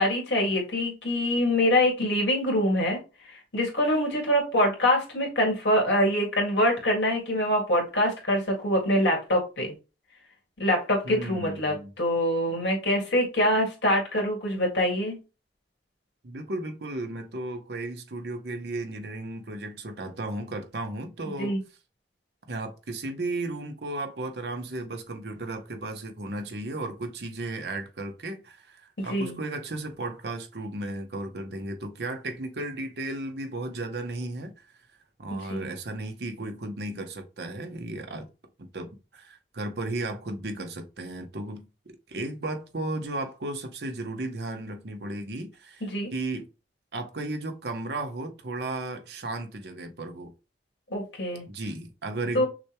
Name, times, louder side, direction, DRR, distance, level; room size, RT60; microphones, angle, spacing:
voice 1, 0.0-3.0 3.3-9.7 10.6-15.2 21.4-21.6 29.0-29.4 35.3-35.7 45.8-46.1 50.9-51.4 52.3-52.5, left 1 dB, 90° left, 2.0 m, -25 dB
voice 2, 11.0-11.9 16.2-21.6 22.5-34.5 35.2-38.3 38.7-41.6 42.1-46.5 46.9-50.3 51.5-52.4, right 2 dB, 65° right, 0.9 m, -34 dB
6.1 x 2.3 x 3.0 m
head